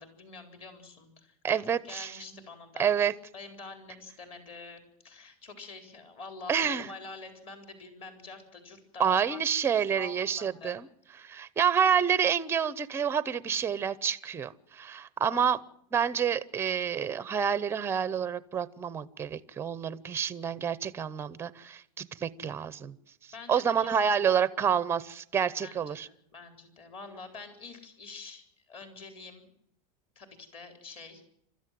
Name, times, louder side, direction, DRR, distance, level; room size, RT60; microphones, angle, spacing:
voice 1, 0.0-2.9 3.3-9.4 10.0-10.8 15.2-15.4 23.3-24.1 25.6-26.0 26.3-29.5 30.2-31.2, left 4 dB, 30° left, 6 dB, 4.2 m, -46 dB
voice 2, 1.4-2.2 2.8-3.1 6.5-6.9 9.0-10.9 11.2-15.6 15.9-22.9 23.5-26.1, right 7 dB, 15° right, 17 dB, 0.7 m, -28 dB
28.5 x 14.0 x 7.6 m, 0.73 s
supercardioid pair, 165°, 19 cm